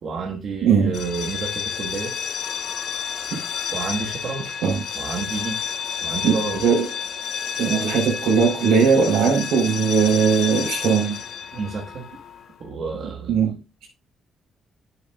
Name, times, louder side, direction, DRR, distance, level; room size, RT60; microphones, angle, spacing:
voice 1, 0.0-2.1 3.7-4.5 4.9-5.6 6.0-6.6 11.5-12.1 12.6-13.4, right 4 dB, 55° right, 1.5 m, -30 dB
voice 2, 0.6-1.0 3.3-3.4 4.6-4.8 6.2-6.3 6.6-6.9 7.6-11.2 13.3-13.9, right 6 dB, 85° right, 3.3 m, -19 dB
sound 1, 0.9-12.6, left 8 dB, 70° left, 1.0 m, -30 dB
9.9 x 7.0 x 2.3 m
cardioid pair, 90°, 0 cm